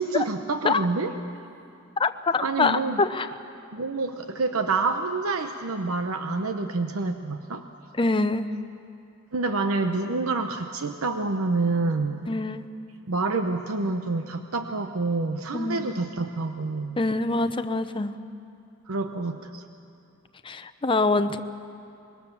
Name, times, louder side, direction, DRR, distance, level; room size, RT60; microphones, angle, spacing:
voice 1, 0.0-1.5 2.4-3.0 3.7-7.6 9.3-12.3 13.1-17.0 18.9-19.6, right 3 dB, 85° right, 7 dB, 0.9 m, -27 dB
voice 2, 2.0-3.3 8.0-8.5 12.3-12.7 15.5-15.9 17.0-18.1 20.4-21.4, left 3 dB, 25° left, 9 dB, 0.7 m, -25 dB
25.0 x 21.5 x 7.1 m, 2.6 s
head